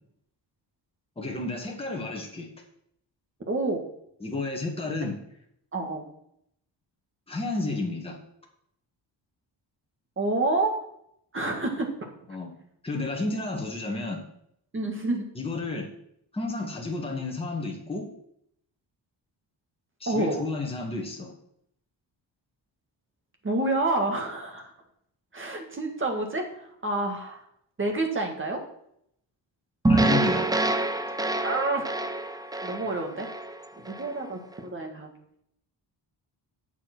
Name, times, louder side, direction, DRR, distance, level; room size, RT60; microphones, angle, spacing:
voice 1, 1.2-2.5 4.2-5.2 7.3-8.2 12.3-12.5 12.8-14.2 15.4-15.9 16.3-18.1 20.0-21.3 29.9-30.5, left 2 dB, 15° left, -1 dB, 1.8 m, -31 dB
voice 2, 3.5-3.8 5.7-6.1 10.2-10.7 11.3-12.1 14.7-15.3 20.1-20.4 23.4-24.7 25.3-27.4 27.8-28.6 31.4-31.9 32.6-33.3 33.7-35.1, right 2 dB, 30° right, 2 dB, 1.9 m, -28 dB
sound 1, 29.8-34.2, right 2 dB, 10° right, 0.4 m, -26 dB
9.6 x 7.1 x 6.1 m, 0.71 s
wide cardioid pair, 175°, 44 cm